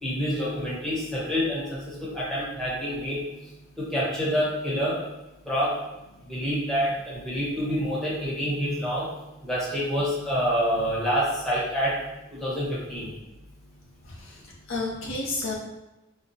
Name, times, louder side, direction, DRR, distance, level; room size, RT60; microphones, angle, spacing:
voice 1, 0.0-3.2 3.8-5.0 5.5-5.7 6.3-9.1 9.4-12.0 12.4-13.1, equal, ahead, -8 dB, 1.0 m, -27 dB
voice 2, 14.0-15.5, left 2 dB, 85° left, -3 dB, 0.7 m, -32 dB
4.1 x 2.2 x 2.8 m, 0.98 s
head